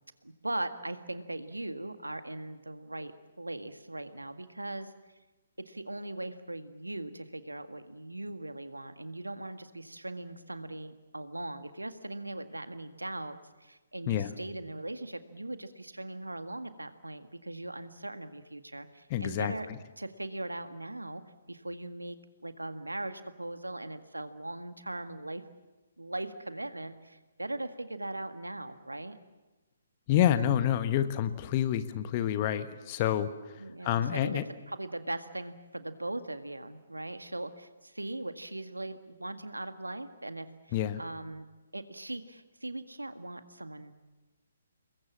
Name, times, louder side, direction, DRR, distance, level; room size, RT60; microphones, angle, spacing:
voice 1, 0.2-3.1 3.4-4.9 5.6-19.7 20.0-21.2 21.5-25.4 26.0-29.2 33.6-34.4 34.7-41.5 41.7-43.9, right 2 dB, 80° right, 9 dB, 1.8 m, -39 dB
voice 2, 19.1-19.5 30.1-33.3 33.8-34.4 40.7-41.0, left 11 dB, 30° left, 11 dB, 1.5 m, -28 dB
28.0 x 22.0 x 7.4 m, 1.2 s
figure-of-eight pair, 135°, 0 cm